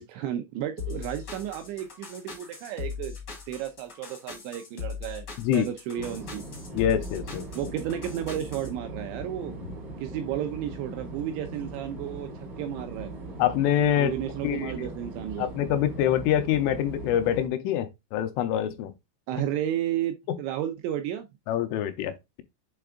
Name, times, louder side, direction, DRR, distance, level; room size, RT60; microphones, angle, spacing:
voice 1, 0.0-3.1 3.5-5.3 5.5-6.4 7.6-9.6 10.0-12.3 12.6-13.1 14.0-15.5 19.3-21.3, right 11 dB, 85° right, 2.6 m, -32 dB
sound 1, 0.8-8.7, left 6 dB, 60° left, 1.1 m, -39 dB
voice 2, 5.4-5.7 6.7-7.7 9.6-9.7 13.4-14.1 14.4-14.9 15.4-18.9 20.3-20.4 21.5-22.4, left 10 dB, 85° left, 3.1 m, -26 dB
sound 2, 5.9-17.5, right 2 dB, 55° right, 1.1 m, -40 dB
7.7 x 3.4 x 3.6 m
omnidirectional pair, 5.9 m